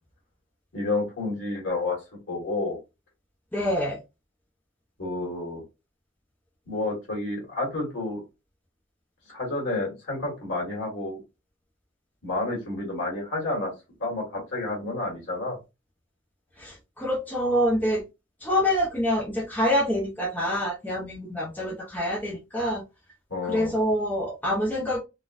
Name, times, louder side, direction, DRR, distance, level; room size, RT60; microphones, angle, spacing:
voice 1, 0.7-2.0 2.3-2.8 5.0-5.6 6.7-8.2 9.3-11.2 12.2-13.7 14.0-15.6 23.3-23.7, left 2 dB, 65° left, -2 dB, 1.7 m, -30 dB
voice 2, 3.5-4.0 16.6-18.0 18.4-22.8 23.5-25.0, equal, 10° left, -5 dB, 0.7 m, -26 dB
4.0 x 2.3 x 2.5 m, 0.24 s
head